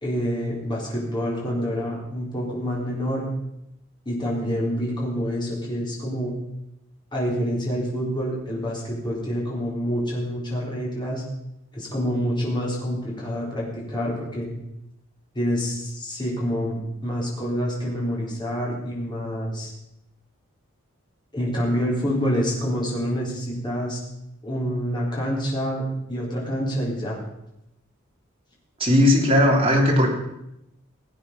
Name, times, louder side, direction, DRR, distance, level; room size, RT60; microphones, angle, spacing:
voice 1, 0.0-3.3 4.1-6.3 7.1-11.2 11.7-14.5 15.3-19.7 21.3-24.0 24.4-25.8 26.1-27.2, equal, 20° left, -4 dB, 4.2 m, -27 dB
voice 2, 28.8-30.1, left 1 dB, 30° right, -1 dB, 3.3 m, -17 dB
17.5 x 8.7 x 5.4 m, 0.85 s
head